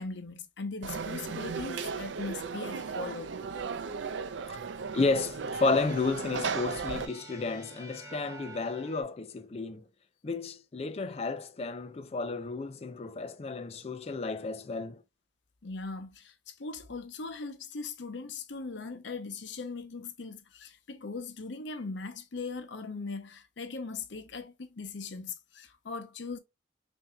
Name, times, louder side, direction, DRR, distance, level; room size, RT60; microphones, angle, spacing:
voice 1, 0.0-3.3 15.6-26.4, left 4 dB, 75° left, 0.7 m, -39 dB
Conversation / Crowd, 0.8-7.1, right 5 dB, 75° right, 0.5 m, -35 dB
sound 1, 4.6-9.0, right 1 dB, 15° right, 0.9 m, -49 dB
voice 2, 4.9-9.8 10.2-15.0, left 3 dB, 35° left, 0.4 m, -32 dB
5.6 x 2.7 x 2.2 m
head